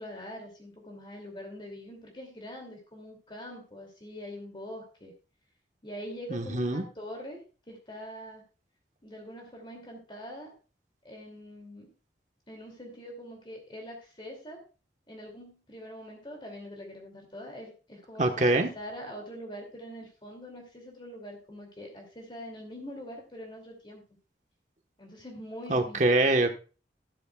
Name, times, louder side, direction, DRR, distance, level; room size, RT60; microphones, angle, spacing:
voice 1, 0.0-5.1 5.8-7.4 7.7-8.4 9.0-10.5 11.0-11.9 12.5-14.6 15.1-24.0 25.0-26.3, equal, 30° left, 1 dB, 2.7 m, -43 dB
voice 2, 6.3-6.8 18.2-18.7 25.7-26.5, right 2 dB, 45° right, 5 dB, 1.3 m, -24 dB
13.0 x 13.0 x 2.4 m, 0.35 s
head